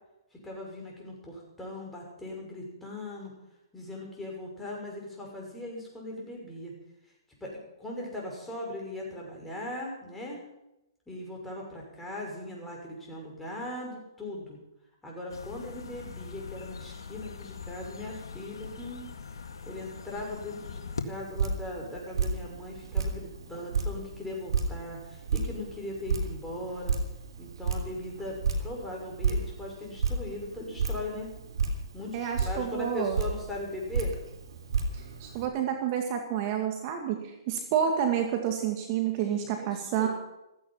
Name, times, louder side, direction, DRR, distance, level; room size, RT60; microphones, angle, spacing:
voice 1, 0.4-3.3 3.7-6.7 7.4-7.5 7.8-10.4 11.1-14.6 15.0-19.0 19.6-26.9 27.4-31.3 31.9-34.2 39.2-40.1, left 1 dB, 5° left, -2 dB, 6.1 m, -39 dB
sound 1, 15.3-21.0, left 5 dB, 75° left, 1.9 m, -42 dB
Drip, 21.0-35.5, right 4 dB, 75° right, 3.2 m, -33 dB
voice 2, 32.1-33.2 34.9-40.1, right 9 dB, 40° right, 4 dB, 2.1 m, -29 dB
15.5 x 15.0 x 5.8 m, 0.90 s
hypercardioid pair, 130°, 2 cm